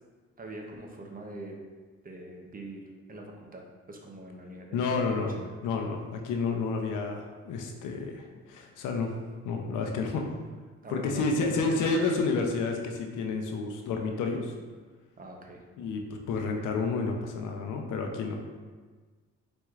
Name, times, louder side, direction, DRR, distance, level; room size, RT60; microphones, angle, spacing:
voice 1, 0.4-1.6 2.0-2.8 3.1-5.5 10.8-11.2 11.5-11.9 15.2-15.6, right 1 dB, 30° right, 1 dB, 0.7 m, -43 dB
voice 2, 4.7-5.4 5.6-9.1 9.4-10.2 10.9-14.5 15.8-16.0 16.3-18.4, left 4 dB, 85° left, 3 dB, 0.6 m, -30 dB
4.6 x 4.2 x 2.4 m, 1.4 s
cardioid pair, 90°, 30 cm